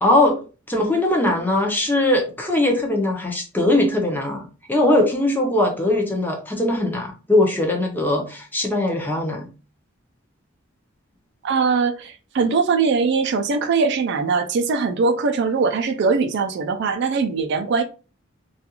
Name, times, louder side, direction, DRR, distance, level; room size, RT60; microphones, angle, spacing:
voice 1, 0.0-0.4 0.7-9.5, left 1 dB, 10° left, 0.5 m, -20 dB
voice 2, 11.4-17.8, right 4 dB, 55° right, 0.3 m, -21 dB
2.4 x 2.3 x 2.8 m
head